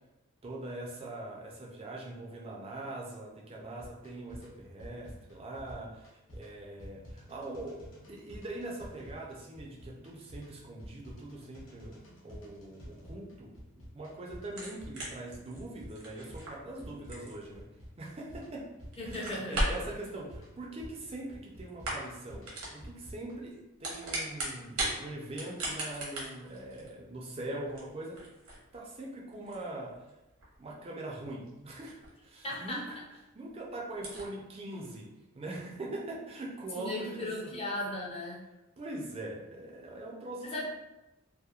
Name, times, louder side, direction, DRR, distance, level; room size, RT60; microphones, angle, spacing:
voice 1, 0.4-12.0 12.2-17.7 18.0-18.7 19.0-28.2 28.7-30.1 30.6-33.0 33.3-35.1 35.3-37.5 38.8-40.6, right 2 dB, 25° right, -2 dB, 0.4 m, -42 dB
sound 1, 3.7-23.4, equal, 65° left, 0.7 m, -50 dB
sound 2, 14.5-18.5 18.9-19.9 21.0-21.4 21.7-22.2 22.4-22.8 23.6-25.0 25.3-32.3 32.7-32.8 33.2-33.3 33.5-33.6 33.9-34.3, right 1 dB, 75° right, 0.8 m, -38 dB
voice 2, 19.0-19.7 32.4-32.8 36.8-38.4 40.4-40.6, left 1 dB, 25° left, -3 dB, 0.5 m, -36 dB
2.8 x 2.1 x 2.3 m, 0.98 s
head